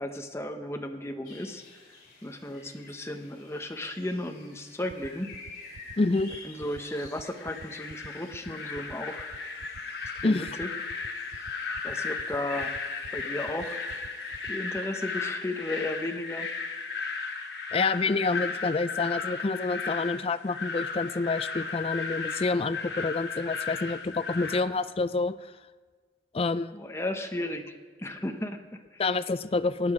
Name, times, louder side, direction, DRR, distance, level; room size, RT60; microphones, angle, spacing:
voice 1, 0.0-1.6 2.2-5.3 6.4-9.3 10.1-10.7 11.8-12.8 13.1-13.8 14.4-16.5 26.7-29.0, left 1 dB, 15° left, 5 dB, 0.9 m, -34 dB
sound 1, 1.2-14.5, left 3 dB, 50° left, 3.4 m, -50 dB
sound 2, 4.9-14.8, right 5 dB, 60° right, 0.3 m, -46 dB
voice 2, 6.0-6.3 10.2-10.5 17.7-25.4 26.3-26.7 29.0-29.9, left 3 dB, 35° left, 13 dB, 0.4 m, -28 dB
sound 3, 7.2-24.6, left 4 dB, 70° left, 1.1 m, -35 dB
18.0 x 9.5 x 4.8 m, 1.5 s
head